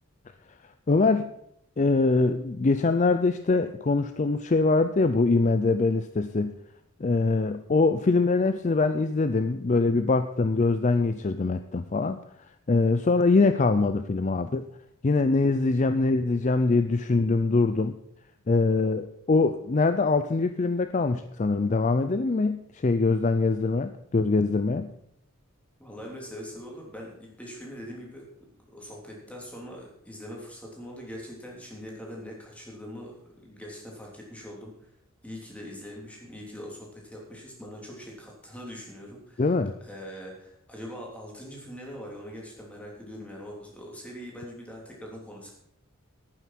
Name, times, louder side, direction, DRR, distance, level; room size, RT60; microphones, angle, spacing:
voice 1, 0.9-1.3 1.8-6.5 7.0-12.2 12.7-14.7 15.0-18.0 18.5-24.9 39.4-39.7, left 3 dB, 35° left, 10 dB, 0.4 m, -23 dB
voice 2, 25.8-34.9 35.2-39.5 39.8-45.5, equal, 5° left, -2 dB, 3.2 m, -42 dB
11.5 x 9.2 x 5.9 m, 0.74 s
head